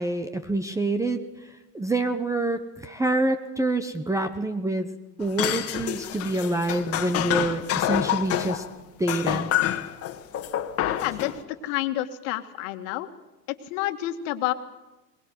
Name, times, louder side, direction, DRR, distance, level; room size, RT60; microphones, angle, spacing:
voice 1, 0.0-4.9 5.2-8.6 9.0-9.5, right 2 dB, 5° right, 10 dB, 0.9 m, -27 dB
sound 1, 5.2-8.7 9.1-11.4, left 11 dB, 30° left, 1.7 m, -27 dB
voice 2, 11.0-13.1 13.7-14.5, left 15 dB, 50° left, 7 dB, 2.0 m, -29 dB
22.0 x 20.5 x 7.9 m, 1.1 s
hypercardioid pair, 115°, 50 cm